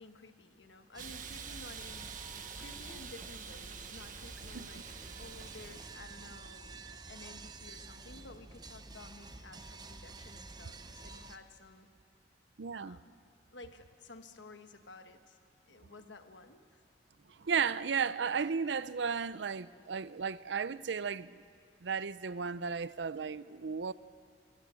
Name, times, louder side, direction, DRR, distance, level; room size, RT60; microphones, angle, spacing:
voice 1, 0.0-2.1 2.6-11.9 12.7-13.1 13.5-15.4 15.7-16.8, left 2 dB, 75° left, 1.4 m, -53 dB
sound 1, 0.9-11.4, right 3 dB, 25° right, 0.9 m, -50 dB
Hiss, 1.0-5.9, right 7 dB, 45° right, 1.1 m, -47 dB
voice 2, 12.6-13.0 17.4-21.4 21.8-23.9, right 6 dB, 70° right, 0.6 m, -34 dB
26.5 x 22.5 x 6.3 m
head